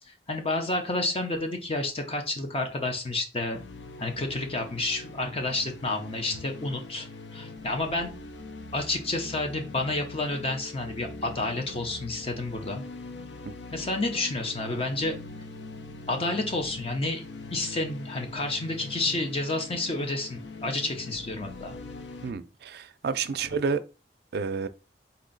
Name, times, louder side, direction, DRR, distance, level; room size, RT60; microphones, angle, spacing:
voice 1, 0.1-3.6 4.0-7.1 7.3-8.1 8.7-12.8 13.7-15.2 16.1-17.2 17.5-21.8, left 2 dB, 35° left, 0.6 m, -30 dB
sound 1, 3.5-22.3, left 3 dB, 80° left, 0.5 m, -42 dB
voice 2, 22.2-23.8 24.3-24.7, right 5 dB, 60° right, 0.4 m, -30 dB
4.2 x 2.8 x 3.9 m
head